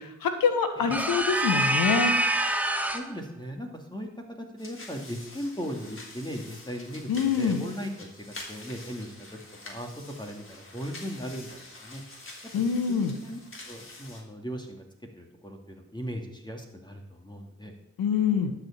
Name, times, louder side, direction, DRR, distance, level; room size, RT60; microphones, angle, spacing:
voice 1, 0.0-2.1 7.1-7.6 12.5-13.1 18.0-18.5, left 6 dB, 70° left, 7 dB, 1.4 m, -25 dB
sound 1, 0.9-3.2, right 1 dB, 5° right, 1.3 m, -26 dB
voice 2, 2.9-4.1 4.4-7.1 7.4-9.1 9.6-12.0 12.9-13.0 13.2-13.4 13.7-14.8 15.2-17.7, equal, 10° left, 2 dB, 2.3 m, -38 dB
sound 2, 4.6-14.2, left 2 dB, 35° left, 3.4 m, -46 dB
12.0 x 4.8 x 7.4 m, 0.83 s
hypercardioid pair, 40°, 36 cm